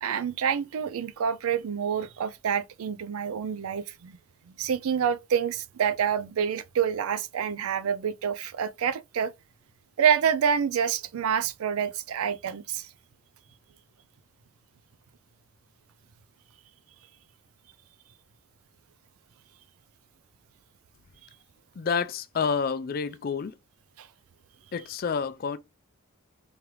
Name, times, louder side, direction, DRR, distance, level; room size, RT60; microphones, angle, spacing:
voice 1, 0.0-4.2 4.5-9.3 10.0-12.9 24.0-24.1, right 7 dB, 90° right, 0.4 m, -27 dB
voice 2, 21.8-23.5 24.7-25.6, left 6 dB, 45° left, 0.3 m, -29 dB
3.6 x 3.2 x 3.0 m
head